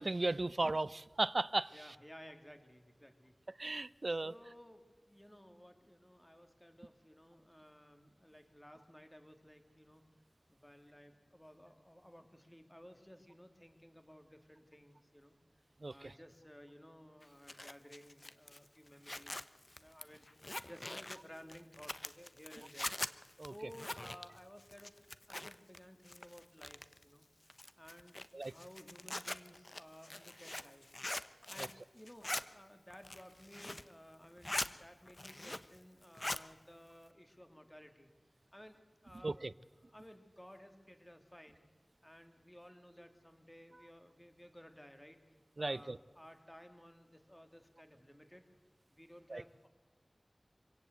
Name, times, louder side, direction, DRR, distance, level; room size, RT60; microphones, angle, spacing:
voice 1, 0.0-1.7 3.6-4.3 15.8-16.1 23.4-23.5 28.3-28.5 31.6-31.7 39.2-39.5 45.6-46.0 49.3-49.4, right 2 dB, 65° right, 18 dB, 0.6 m, -35 dB
voice 2, 1.7-3.4 3.6-3.8 4.1-10.0 10.5-15.4 15.9-19.4 19.7-24.9 25.3-27.3 27.8-30.9 31.5-38.1 38.5-39.4 39.9-41.6 42.0-45.2 45.6-48.4 48.9-49.7, equal, 15° left, 6 dB, 2.8 m, -57 dB
Zipper (clothing), 17.2-25.8 26.0-27.0 27.5-31.8 32.1-32.4 32.9-33.9 34.2-34.7 35.1-35.8 36.0-36.4, left 1 dB, 40° left, 1.0 m, -43 dB
25.5 x 17.0 x 8.2 m, 1.4 s
wide cardioid pair, 50°, 0 cm